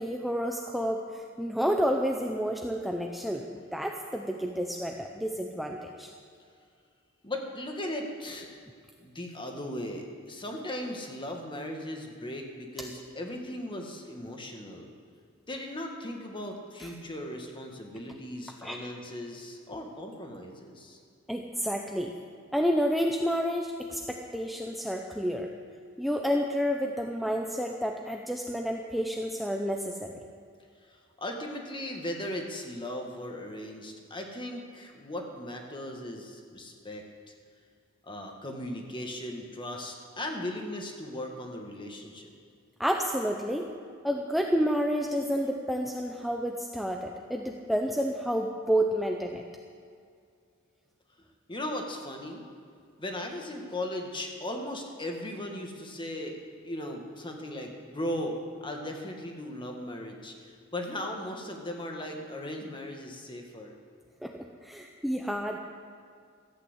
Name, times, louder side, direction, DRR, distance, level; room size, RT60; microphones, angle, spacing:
voice 1, 0.0-6.1 16.8-16.9 18.6-18.8 21.3-22.1 22.5-25.5 26.0-30.1 42.8-43.7 44.0-49.4 64.2-64.3 64.6-65.6, equal, ahead, 1 dB, 0.7 m, -30 dB
voice 2, 7.2-8.5 9.0-14.9 15.5-21.0 30.9-37.0 38.0-42.3 51.5-52.4 53.0-56.4 56.6-63.7, left 1 dB, 25° left, 2 dB, 1.7 m, -37 dB
14.0 x 9.0 x 8.1 m, 2.2 s
head